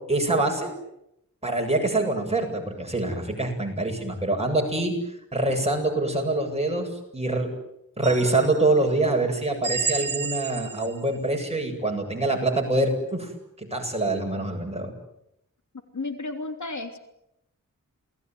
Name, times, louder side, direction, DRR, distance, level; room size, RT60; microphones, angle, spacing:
voice 1, 0.1-0.7 1.4-4.9 5.3-7.5 8.0-13.3 13.7-14.9, right 2 dB, 20° right, 2 dB, 8.0 m, -25 dB
sound 1, 8.0-8.8 9.6-11.1, right 4 dB, 75° right, 2.1 m, -31 dB
voice 2, 15.9-17.0, left 3 dB, 60° left, 5 dB, 3.4 m, -32 dB
29.0 x 20.0 x 9.5 m, 0.82 s
wide cardioid pair, 95°, 32 cm